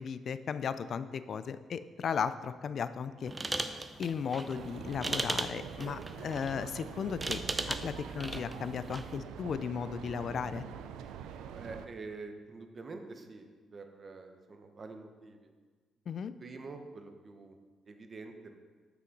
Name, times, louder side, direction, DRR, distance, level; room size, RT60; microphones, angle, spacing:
voice 1, 0.0-3.6 4.0-7.4 7.7-10.6 16.1-16.3, left 7 dB, 55° left, 13 dB, 0.3 m, -36 dB
sound 1, 3.3-9.2, right 2 dB, 20° right, 0.4 m, -38 dB
sound 2, 4.5-11.9, right 8 dB, 90° right, 0.4 m, -44 dB
voice 2, 11.5-15.5 16.4-17.6 17.8-18.6, right 3 dB, 40° right, 6 dB, 0.8 m, -46 dB
6.2 x 5.8 x 4.6 m, 1.4 s
cardioid pair, 90°, 0 cm